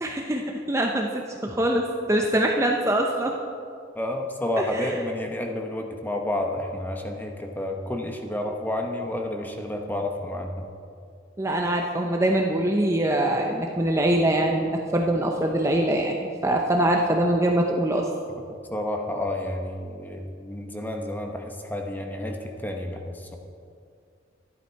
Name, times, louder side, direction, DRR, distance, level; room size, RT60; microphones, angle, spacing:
voice 1, 0.0-3.4 4.7-4.9 11.4-16.2 16.4-18.1, right 1 dB, 15° right, 1 dB, 0.7 m, -23 dB
voice 2, 3.9-10.7 18.7-23.4, left 1 dB, 10° left, 2 dB, 1.0 m, -30 dB
12.5 x 11.5 x 4.6 m, 2.3 s
head